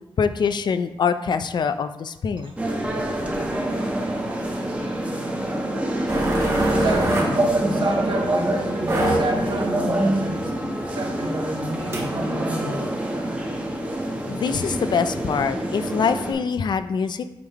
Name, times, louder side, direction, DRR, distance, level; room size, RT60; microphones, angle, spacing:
voice 1, 0.2-2.5 14.3-17.3, left 6 dB, 60° left, 11 dB, 0.4 m, -24 dB
sound 1, 2.6-16.3, right 1 dB, 15° right, 1.0 m, -28 dB
sound 2, 6.1-12.1, right 1 dB, 35° right, 1.6 m, -23 dB
voice 2, 6.7-10.5 10.9-12.9, right 2 dB, 70° right, 2 dB, 1.1 m, -30 dB
8.5 x 3.7 x 4.6 m, 0.93 s
wide cardioid pair, 170°, 9 cm